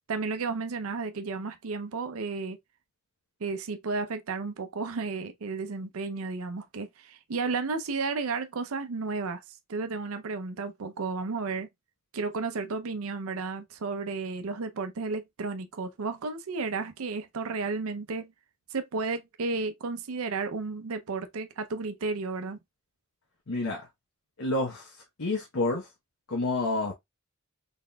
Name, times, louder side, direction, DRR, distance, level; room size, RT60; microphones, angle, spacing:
voice 1, 0.1-2.6 3.4-9.4 9.7-11.7 12.1-18.3 18.7-22.6, right 4 dB, 80° right, 0.6 m, -33 dB
voice 2, 23.5-23.8 24.4-25.9 26.3-26.9, left 2 dB, 80° left, 1.0 m, -29 dB
4.0 x 3.6 x 2.2 m
head